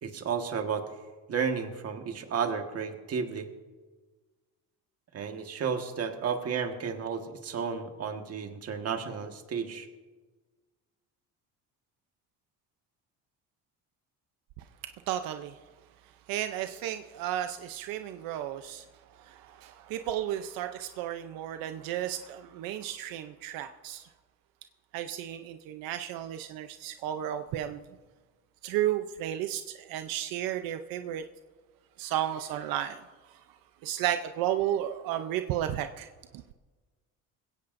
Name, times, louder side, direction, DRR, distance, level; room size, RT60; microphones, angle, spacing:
voice 1, 0.0-0.9 1.3-3.5 5.1-9.9, right 6 dB, 45° right, 5 dB, 1.6 m, -32 dB
voice 2, 15.1-15.5 16.3-18.8 19.2-24.1 24.9-27.8 28.6-31.2 32.0-33.0 33.3-33.4 33.8-36.1, right 11 dB, 85° right, 8 dB, 0.7 m, -33 dB
20.5 x 17.0 x 2.6 m, 1.3 s
cardioid pair, 120°, 34 cm